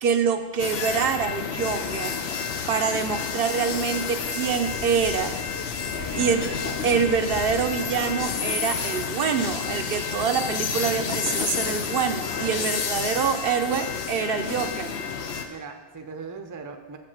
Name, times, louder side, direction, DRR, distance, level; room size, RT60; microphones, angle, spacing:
voice 1, 0.0-2.2 2.7-5.3 6.1-6.4 6.8-14.9, right 6 dB, 70° right, 7 dB, 0.8 m, -25 dB
sound 1, 0.6-15.5, left 6 dB, 85° left, 0.9 m, -30 dB
voice 2, 5.9-7.0 15.5-17.0, right 4 dB, 25° right, 5 dB, 0.5 m, -39 dB
7.5 x 5.2 x 5.6 m, 1.2 s
omnidirectional pair, 1.0 m